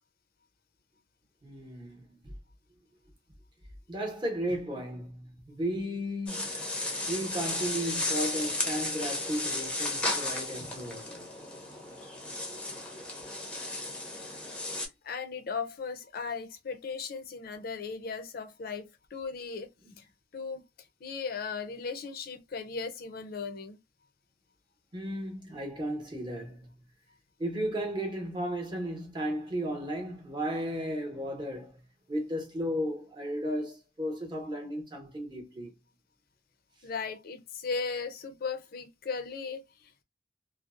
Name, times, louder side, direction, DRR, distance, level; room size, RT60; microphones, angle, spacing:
voice 1, 1.4-2.4 3.9-6.6 7.1-11.3 19.8-19.9 24.9-26.7 27.4-31.8 32.1-35.7, equal, 25° right, 0.8 m, -34 dB
sound 1, 6.3-14.9, left 2 dB, 5° left, 0.6 m, -34 dB
voice 2, 14.7-19.7 20.3-20.6 21.0-23.8 36.8-40.0, left 5 dB, 55° left, 0.5 m, -37 dB
2.7 x 2.0 x 2.4 m
head